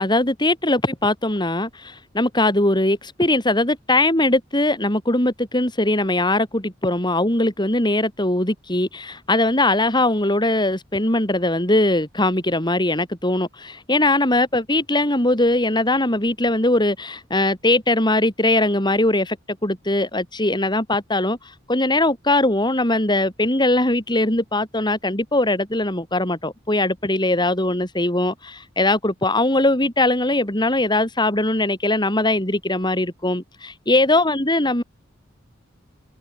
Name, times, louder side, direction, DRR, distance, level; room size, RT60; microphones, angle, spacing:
voice 1, 0.0-19.4 19.6-34.8, left 2 dB, 25° left, 6.9 m, -20 dB
head